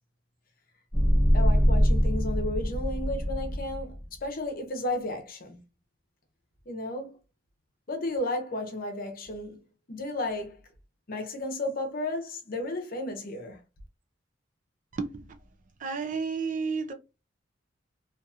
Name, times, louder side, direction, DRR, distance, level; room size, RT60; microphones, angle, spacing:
sound 1, 0.9-4.1, equal, 5° right, 0.8 m, -24 dB
voice 1, 1.3-5.6 6.7-7.2 7.9-10.6 11.1-13.6, left 2 dB, 50° left, 0.7 m, -33 dB
voice 2, 14.9-15.4 15.8-16.9, right 5 dB, 40° right, 0.4 m, -31 dB
2.7 x 2.5 x 2.4 m
head